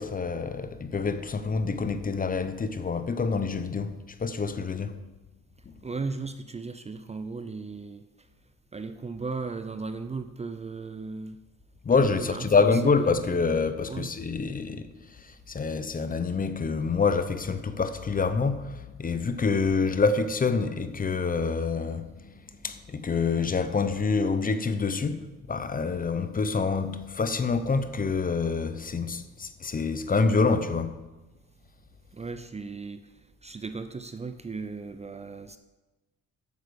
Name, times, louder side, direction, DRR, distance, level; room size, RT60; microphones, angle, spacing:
voice 1, 0.0-5.0 5.7-5.8 11.8-25.2 25.5-31.0, left 4 dB, 30° left, 0.7 m, -27 dB
voice 2, 5.8-8.0 8.7-11.4 12.0-13.2 13.9-14.1 32.1-33.0 33.4-35.6, right 4 dB, 20° right, 0.5 m, -36 dB
8.2 x 7.2 x 6.4 m
cardioid pair, 90°, 30 cm